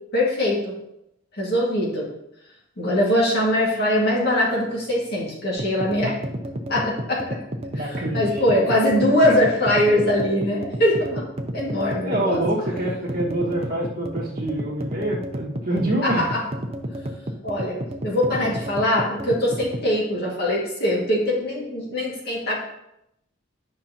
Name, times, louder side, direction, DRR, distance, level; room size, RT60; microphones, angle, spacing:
voice 1, 0.1-0.7 1.3-2.1 2.8-6.1 6.7-7.4 8.1-11.3 11.5-12.4 16.0-16.4 17.4-22.6, left 1 dB, 50° left, -4 dB, 2.3 m, -22 dB
sound 1, 5.6-19.9, equal, 30° right, 0.7 m, -32 dB
voice 2, 7.7-8.4 9.2-9.4 12.0-16.4 18.3-18.5, right 1 dB, 45° right, -3 dB, 1.9 m, -26 dB
10.5 x 5.7 x 3.0 m, 0.81 s
head